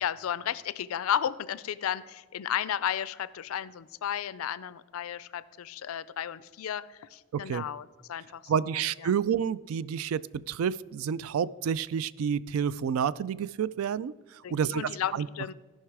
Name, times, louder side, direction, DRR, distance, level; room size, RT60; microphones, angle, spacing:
voice 1, 0.0-9.1 14.4-15.5, left 9 dB, 90° left, 18 dB, 0.4 m, -33 dB
voice 2, 7.3-7.6 8.5-15.3, right 7 dB, 85° right, 18 dB, 0.3 m, -29 dB
15.5 x 5.5 x 4.7 m, 1.3 s
head